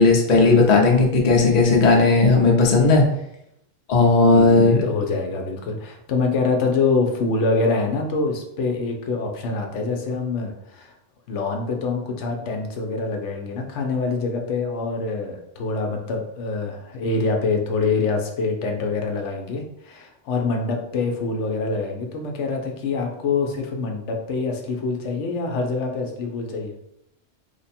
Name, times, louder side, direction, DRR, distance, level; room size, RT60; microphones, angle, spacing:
voice 1, 0.0-3.0 3.9-4.8, left 3 dB, 45° left, -1 dB, 0.7 m, -15 dB
voice 2, 4.3-10.9 11.3-26.7, left 3 dB, 85° left, 3 dB, 1.0 m, -25 dB
3.2 x 2.1 x 4.1 m, 0.79 s
omnidirectional pair, 1.2 m